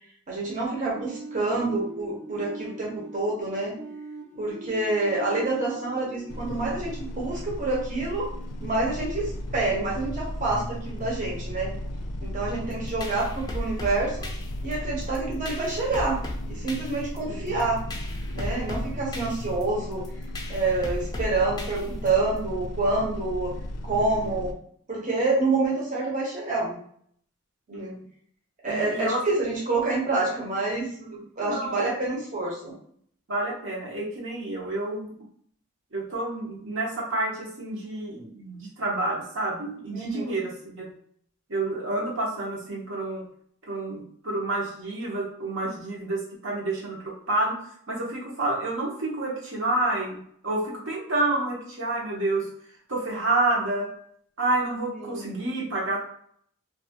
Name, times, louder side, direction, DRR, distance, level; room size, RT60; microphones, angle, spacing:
voice 1, 0.3-3.7 4.4-8.3 8.6-11.7 12.2-14.2 14.6-16.2 16.5-17.8 18.3-20.1 20.5-23.5 23.8-24.5 24.9-26.8 27.7-27.9 28.6-32.7 39.9-40.4 55.0-55.4, right 3 dB, 35° right, -4 dB, 0.8 m, -27 dB
sound 1, 0.9-7.7, right 2 dB, 85° right, 1.0 m, -42 dB
sound 2, 6.3-24.5, left 1 dB, 90° left, 0.4 m, -35 dB
sound 3, 12.7-22.4, left 1 dB, 20° left, 0.4 m, -37 dB
voice 2, 27.7-28.0 28.6-29.2 31.4-32.0 33.3-35.2 35.9-40.9 41.5-43.2 43.7-50.2 50.4-52.5 52.9-53.9 54.4-56.0, right 2 dB, 60° right, -4 dB, 0.8 m, -29 dB
2.6 x 2.4 x 2.8 m, 0.63 s
head